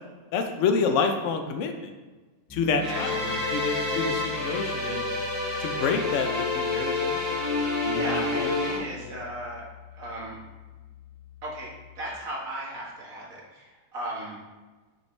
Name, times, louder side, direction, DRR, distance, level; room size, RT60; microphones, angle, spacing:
voice 1, 0.3-1.7 2.5-5.0 5.6-8.5 9.0-9.2, left 5 dB, 60° left, 6 dB, 0.8 m, -28 dB
Piano, 2.5-12.1, left 7 dB, 10° left, 1.5 m, -44 dB
sound 1, 2.8-8.8, left 3 dB, 30° right, 1.5 m, -28 dB
voice 2, 2.9-3.7 7.6-10.4 11.4-14.4, right 1 dB, 55° right, -4 dB, 1.9 m, -37 dB
6.7 x 5.2 x 3.2 m, 1.3 s
omnidirectional pair, 1.8 m